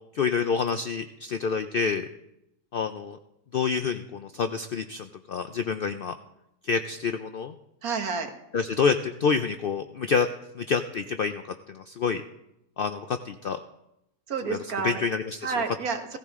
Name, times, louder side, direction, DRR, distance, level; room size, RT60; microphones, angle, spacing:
voice 1, 0.1-2.1 2.7-3.2 3.5-6.1 6.6-7.5 8.5-10.3 10.5-12.2 12.8-13.6 14.5-14.6 14.8-15.5, left 5 dB, 75° left, 9 dB, 0.5 m, -27 dB
voice 2, 7.8-8.3 14.3-15.0 15.4-16.2, right 5 dB, 70° right, 5 dB, 1.9 m, -30 dB
16.5 x 14.5 x 3.6 m, 0.85 s
omnidirectional pair, 1.6 m